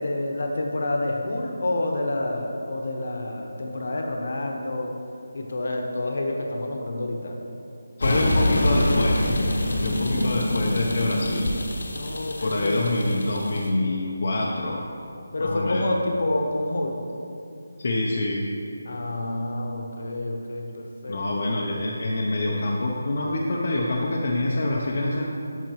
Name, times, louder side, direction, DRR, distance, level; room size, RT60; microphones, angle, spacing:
voice 1, 0.0-5.0 5.3-7.4 11.9-12.8 15.3-17.0 18.8-21.4, left 1 dB, 60° left, 2 dB, 1.0 m, -28 dB
sound 1, 8.0-13.7, left 1 dB, 85° left, 1.1 m, -25 dB
voice 2, 8.0-9.2 9.8-11.5 12.4-14.9 15.4-15.9 17.8-18.5 21.1-25.2, left 2 dB, 45° left, -3 dB, 0.6 m, -26 dB
10.0 x 5.8 x 3.0 m, 2.6 s
figure-of-eight pair, 175°, 0 cm